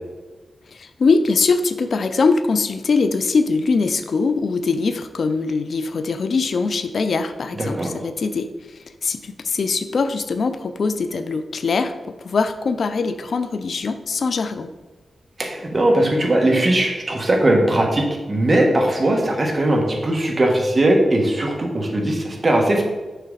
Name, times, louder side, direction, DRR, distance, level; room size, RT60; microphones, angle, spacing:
voice 1, 0.7-8.5 9.0-14.7, left 4 dB, 65° left, 10 dB, 0.4 m, -22 dB
voice 2, 7.6-7.9 15.4-22.8, right 1 dB, 35° right, 1 dB, 1.5 m, -19 dB
6.7 x 5.9 x 3.9 m, 1.2 s
wide cardioid pair, 110°, 0 cm